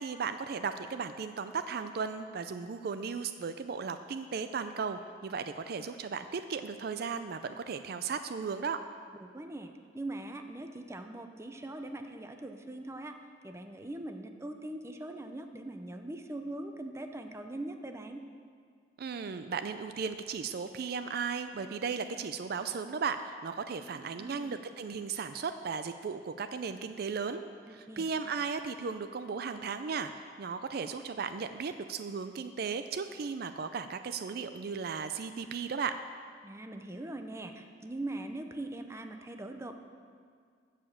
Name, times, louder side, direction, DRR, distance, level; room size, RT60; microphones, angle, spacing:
voice 1, 0.0-8.8 19.0-27.4 27.7-36.0, right 5 dB, 60° right, 10 dB, 0.4 m, -36 dB
voice 2, 9.2-13.1 13.4-18.2 23.8-24.6 27.7-28.1 36.4-39.7, right 1 dB, 15° right, 6 dB, 0.6 m, -41 dB
14.0 x 5.0 x 7.2 m, 2.1 s
head